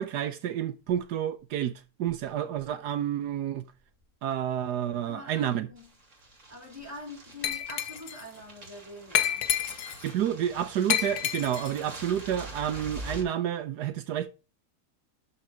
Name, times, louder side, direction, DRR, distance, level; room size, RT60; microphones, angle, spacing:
voice 1, 0.0-1.7 2.0-3.6 4.2-5.7 10.0-14.3, right 10 dB, 80° right, 1.4 m, -29 dB
voice 2, 4.9-5.9 6.5-9.5, left 1 dB, 10° right, 4.4 m, -45 dB
sound 1, 5.8-13.2, right 2 dB, 50° right, 3.3 m, -45 dB
Glass, 7.4-8.2 9.1-10.1 10.9-11.8, left 10 dB, 75° left, 1.5 m, -29 dB
12.5 x 4.8 x 4.5 m
omnidirectional pair, 1.7 m